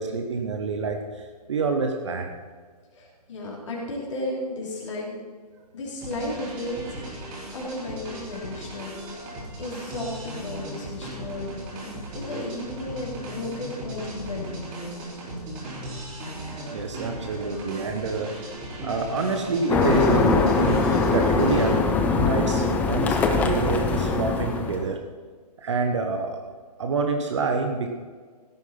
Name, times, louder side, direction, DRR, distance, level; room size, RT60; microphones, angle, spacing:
voice 1, 0.0-2.3 16.7-18.3 18.8-20.8 21.1-21.8 22.1-25.0 25.6-26.4 26.8-27.9, right 4 dB, 45° right, 4 dB, 1.3 m, -27 dB
voice 2, 2.9-5.2 5.7-7.0 7.5-9.0 9.6-11.5 12.1-14.9, left 2 dB, 50° left, -4 dB, 3.8 m, -34 dB
sound 1, 6.0-22.1, right 1 dB, 25° right, 4.0 m, -37 dB
sound 2, 19.7-24.9, left 4 dB, 5° left, 0.6 m, -22 dB
16.5 x 9.7 x 4.3 m, 1.5 s
figure-of-eight pair, 130°, 21 cm